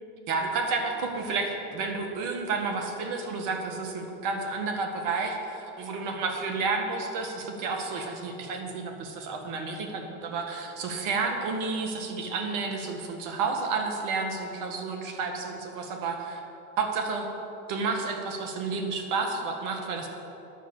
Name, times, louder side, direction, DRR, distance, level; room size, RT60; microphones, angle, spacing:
voice 1, 0.3-16.4 16.8-17.2 17.7-20.1, right 4 dB, 65° right, 3 dB, 1.8 m, -31 dB
9.9 x 6.8 x 8.3 m, 3.0 s
supercardioid pair, 85°, 34 cm